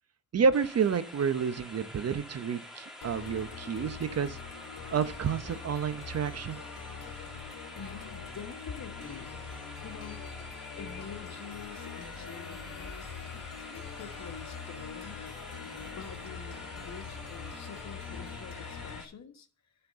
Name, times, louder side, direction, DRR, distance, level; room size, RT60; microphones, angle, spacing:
voice 1, 0.3-4.4 4.9-6.6, right 6 dB, 50° right, 12 dB, 0.9 m, -29 dB
sound 1, 0.5-19.0, left 1 dB, ahead, 2.7 m, -47 dB
sound 2, 3.0-19.0, left 6 dB, 75° left, 1.4 m, -43 dB
voice 2, 7.7-9.4 9.8-10.3 10.8-15.2 15.6-19.7, left 6 dB, 60° left, 6 dB, 1.5 m, -47 dB
11.0 x 4.6 x 6.7 m, 0.42 s
cardioid pair, 65°, 31 cm